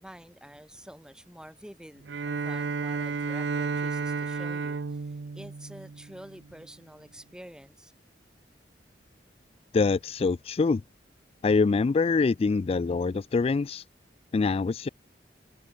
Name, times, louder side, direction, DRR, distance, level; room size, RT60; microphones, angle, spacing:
voice 1, 0.0-5.0 5.3-7.9, equal, 5° right, 1.4 m, -48 dB
Bowed string instrument, 2.0-6.5, right 4 dB, 80° right, 0.6 m, -32 dB
voice 2, 9.7-10.8 11.4-13.8 14.3-14.9, left 4 dB, 35° left, 0.3 m, -24 dB
head